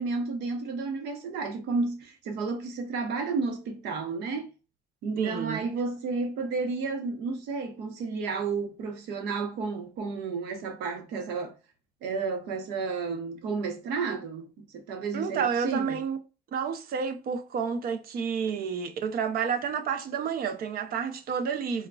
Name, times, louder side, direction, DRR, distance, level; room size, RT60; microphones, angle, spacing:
voice 1, 0.0-4.5 5.0-11.6 12.0-16.0, right 4 dB, 90° right, 0.9 m, -32 dB
voice 2, 5.2-5.6 15.1-16.2 16.5-21.9, right 6 dB, 60° right, 0.7 m, -30 dB
4.6 x 2.2 x 2.3 m
cardioid pair, 110°, 17 cm